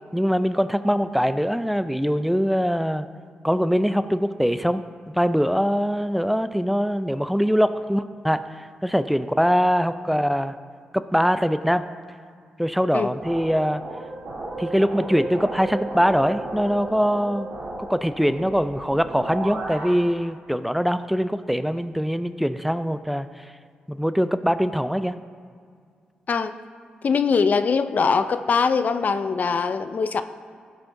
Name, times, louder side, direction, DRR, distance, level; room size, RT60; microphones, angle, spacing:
voice 1, 0.1-3.1 3.4-4.8 5.1-10.6 10.9-11.9 12.6-13.8 14.6-17.5 17.9-23.5 23.9-25.1, equal, ahead, 11 dB, 0.4 m, -22 dB
sound 1, 13.2-19.9, right 2 dB, 85° right, 2.8 m, -34 dB
voice 2, 27.0-30.2, left 5 dB, 55° left, 10 dB, 0.5 m, -22 dB
16.0 x 9.0 x 2.7 m, 2.1 s
cardioid pair, 60°, 3 cm